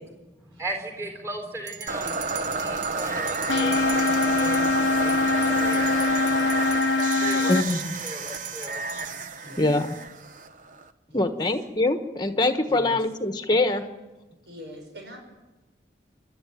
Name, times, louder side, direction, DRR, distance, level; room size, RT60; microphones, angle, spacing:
voice 1, 0.4-2.2 2.5-6.1 7.2-7.7 8.0-9.3, right 1 dB, 15° right, 4 dB, 4.0 m, -37 dB
sound 1, 1.7-4.7 5.1-9.1, right 8 dB, 90° right, 1.7 m, -40 dB
sound 2, 1.9-10.9, right 3 dB, 45° right, 0.9 m, -30 dB
sound 3, 3.5-7.6, left 3 dB, 75° left, 0.7 m, -23 dB
voice 2, 7.5-8.0 9.6-9.9 11.1-13.8, left 2 dB, 25° left, 7 dB, 1.3 m, -23 dB
voice 3, 9.4-9.8 11.1-11.4 12.7-13.0 14.5-15.2, equal, 70° right, 3 dB, 6.6 m, -44 dB
26.5 x 12.0 x 9.4 m, 1.1 s
head